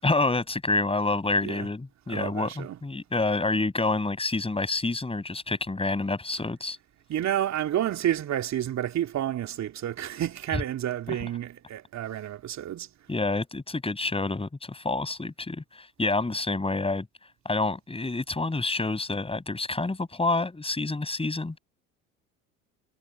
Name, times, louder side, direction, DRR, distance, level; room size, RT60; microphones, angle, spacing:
voice 1, 0.0-6.8 13.1-17.1 17.5-21.6, left 3 dB, 15° left, 7.0 m, -28 dB
voice 2, 2.1-2.8 7.1-12.9, right 11 dB, 45° right, 3.0 m, -30 dB
figure-of-eight pair, 60°, 38 cm